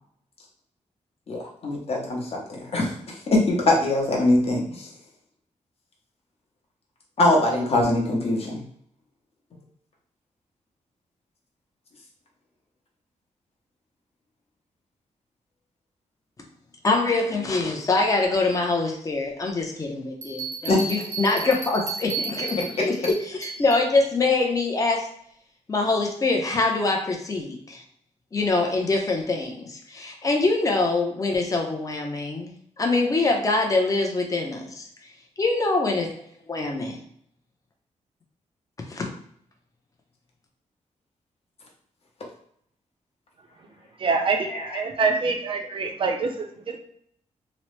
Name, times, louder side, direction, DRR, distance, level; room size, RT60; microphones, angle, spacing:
voice 1, 1.3-4.9 7.2-8.6 20.7-20.8 44.5-44.8, left 2 dB, 50° left, -2 dB, 0.9 m, -23 dB
voice 2, 16.8-25.1 25.7-27.8 28.3-34.8 35.4-36.1 36.5-37.0 38.9-39.1, left 3 dB, 25° left, 2 dB, 0.6 m, -24 dB
Bell, 20.2-23.9, right 4 dB, 90° right, 0.8 m, -33 dB
voice 3, 44.0-46.8, right 4 dB, 45° right, 3 dB, 0.5 m, -25 dB
2.9 x 2.0 x 3.1 m, 0.67 s
wide cardioid pair, 125°, 13 cm